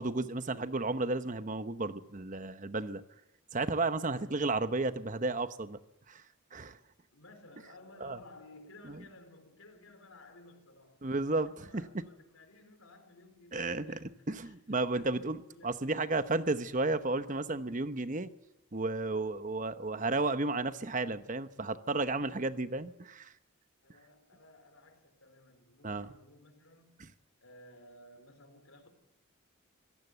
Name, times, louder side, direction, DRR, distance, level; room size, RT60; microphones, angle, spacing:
voice 1, 0.0-3.0 3.5-5.8 6.1-6.2 6.5-6.8 8.0-8.2 8.9-9.0 11.0-11.8 13.5-18.3 18.7-23.3 25.8-26.1, right 3 dB, 40° right, 0.9 m, -33 dB
voice 2, 7.1-15.9 23.8-27.0 27.4-28.9, left 2 dB, 85° left, 4.2 m, -56 dB
24.5 x 17.0 x 8.1 m
head